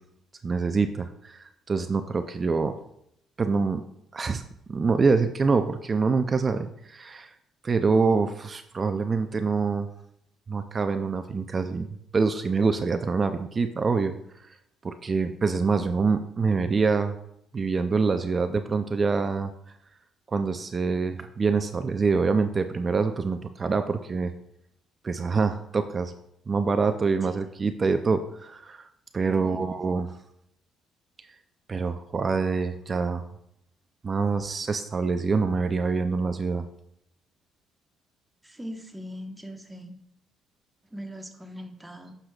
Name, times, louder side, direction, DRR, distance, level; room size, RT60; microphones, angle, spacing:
voice 1, 0.4-2.8 3.4-3.8 4.1-4.4 4.7-7.3 7.6-9.9 10.5-11.9 12.1-14.1 14.8-17.1 17.5-19.5 20.3-24.3 25.0-26.1 26.5-28.8 29.1-30.1 31.7-33.2 34.0-36.6, right 4 dB, 35° right, 9 dB, 0.5 m, -25 dB
voice 2, 29.3-29.7 38.4-39.9 40.9-42.1, equal, 10° right, 4 dB, 1.2 m, -40 dB
9.8 x 6.7 x 2.4 m, 0.77 s
cardioid pair, 95°, 0 cm